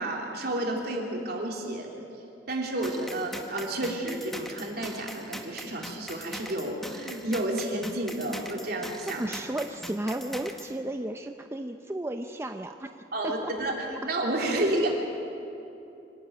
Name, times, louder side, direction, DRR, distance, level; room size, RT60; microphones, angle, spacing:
voice 1, 0.0-1.9 2.5-9.2 13.1-14.9, right 1 dB, 60° right, 0 dB, 3.3 m, -31 dB
sound 1, 2.8-10.7, equal, ahead, 1.2 m, -41 dB
voice 2, 9.1-12.9 13.2-13.5, right 1 dB, 15° right, 5 dB, 0.6 m, -33 dB
25.5 x 12.5 x 9.2 m, 2.8 s
head